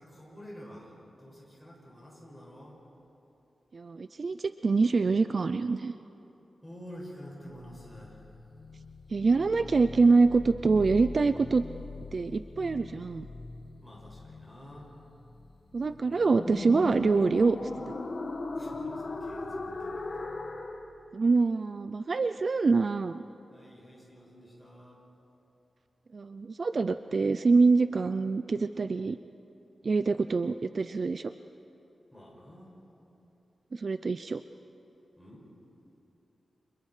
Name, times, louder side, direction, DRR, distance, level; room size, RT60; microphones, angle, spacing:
voice 1, 0.0-2.8 6.6-8.3 13.8-14.9 18.5-20.2 23.5-25.0 32.1-32.8 35.2-35.5, equal, 5° left, -4 dB, 7.4 m, -49 dB
voice 2, 3.7-5.9 9.1-11.6 12.1-13.3 15.7-17.7 21.1-23.2 26.1-29.2 29.8-31.3 33.7-34.4, right 4 dB, 45° right, 11 dB, 0.4 m, -25 dB
sound 1, 7.6-20.8, left 3 dB, 45° left, 1.9 m, -40 dB
30.0 x 28.0 x 5.0 m, 3.0 s
wide cardioid pair, 145°, 0 cm